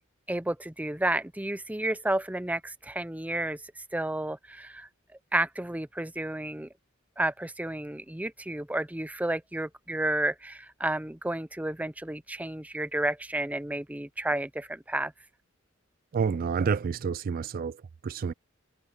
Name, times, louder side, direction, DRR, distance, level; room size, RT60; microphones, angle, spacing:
voice 1, 0.3-4.9 5.3-6.7 7.2-15.1, right 1 dB, 10° right, 0.6 m, -31 dB
voice 2, 16.1-18.3, right 6 dB, 45° right, 0.3 m, -29 dB
head